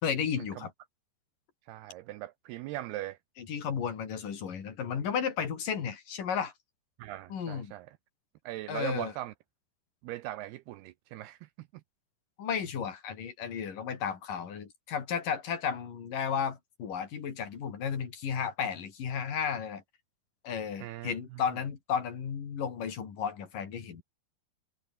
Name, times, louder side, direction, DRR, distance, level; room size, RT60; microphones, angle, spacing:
voice 1, 0.0-0.7 3.4-6.5 7.3-7.7 8.7-9.1 12.4-19.8 20.4-24.0, left 7 dB, 55° left, 4.7 m, -33 dB
voice 2, 1.7-3.2 7.0-7.9 8.5-9.3 10.0-11.7 20.8-21.2, right 15 dB, 75° right, 2.6 m, -39 dB
omnidirectional pair, 4.9 m